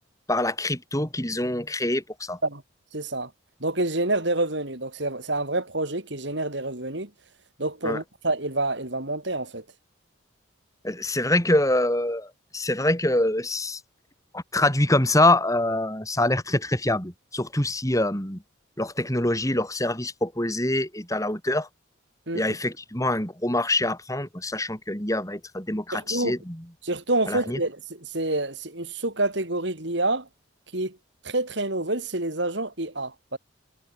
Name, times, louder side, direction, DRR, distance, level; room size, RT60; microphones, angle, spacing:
voice 1, 0.3-2.4 7.8-8.0 10.8-13.8 14.3-18.4 18.8-21.7 22.3-26.6 27.3-27.6, left 1 dB, 15° left, 4.8 m, -25 dB
voice 2, 2.9-3.3 3.6-7.1 7.6-9.6 22.3-22.4 25.9-26.4 26.8-30.3 30.7-31.0 31.2-33.4, right 2 dB, 60° right, 3.7 m, -27 dB
head